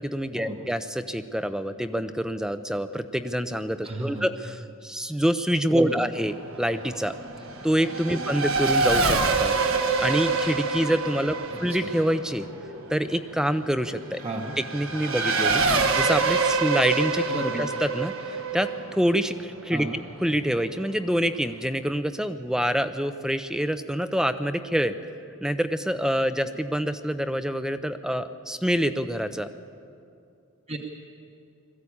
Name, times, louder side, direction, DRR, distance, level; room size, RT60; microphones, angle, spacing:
voice 1, 0.0-7.2 7.6-9.5 10.0-12.5 12.9-14.2 14.7-15.6 15.9-17.3 17.5-18.1 18.5-24.9 25.4-29.5, equal, 5° right, 10 dB, 0.6 m, -26 dB
voice 2, 3.8-4.3 5.7-6.0 8.1-8.2 11.8-11.9 14.2-14.5 17.3-17.7 19.7-20.0 30.7-30.8, right 1 dB, 30° right, 1 dB, 1.1 m, -32 dB
Race car auto racing / Accelerating revving vroom, 6.2-20.2, right 4 dB, 65° right, 1.4 m, -26 dB
21.0 x 15.0 x 8.5 m, 2.5 s
head